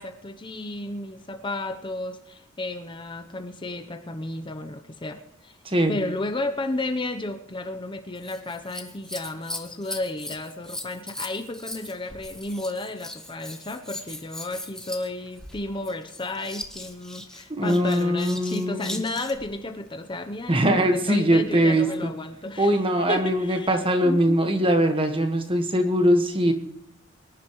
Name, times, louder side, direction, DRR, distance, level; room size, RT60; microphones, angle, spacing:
voice 1, 0.0-5.6 5.9-22.8 23.1-23.8 24.0-24.5, left 2 dB, 25° left, 7 dB, 0.8 m, -33 dB
voice 2, 5.6-6.0 17.5-19.0 20.5-22.1 22.6-26.5, equal, 25° right, 6 dB, 1.5 m, -22 dB
Scissors, 8.1-19.5 21.5-22.1 22.8-22.9, left 1 dB, 5° left, 1.2 m, -39 dB
24.0 x 11.0 x 3.1 m, 0.78 s
head